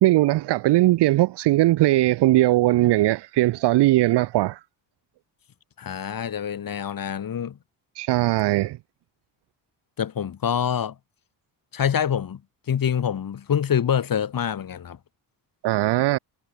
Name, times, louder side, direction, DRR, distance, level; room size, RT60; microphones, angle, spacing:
voice 1, 0.0-4.6 8.0-8.8 15.6-16.2, right 16 dB, 80° right, 0.7 m, -19 dB
voice 2, 5.8-7.6 10.0-10.9 11.7-12.4 12.7-15.0, left 8 dB, 55° left, 4.6 m, -25 dB
cardioid pair, 110°, 41 cm